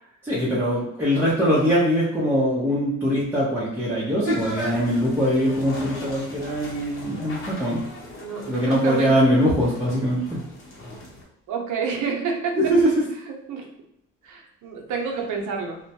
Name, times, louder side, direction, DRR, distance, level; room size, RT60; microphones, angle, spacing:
voice 1, 0.2-7.8 8.5-10.4 12.6-12.9, equal, 5° right, -8 dB, 0.6 m, -22 dB
sound 1, 4.2-11.2, left 1 dB, 45° left, 0.9 m, -38 dB
voice 2, 8.2-9.2 11.5-12.8 13.3-13.7 14.2-15.8, right 5 dB, 80° right, 1 dB, 0.6 m, -29 dB
2.2 x 2.1 x 2.7 m, 0.84 s
cardioid pair, 90°, 30 cm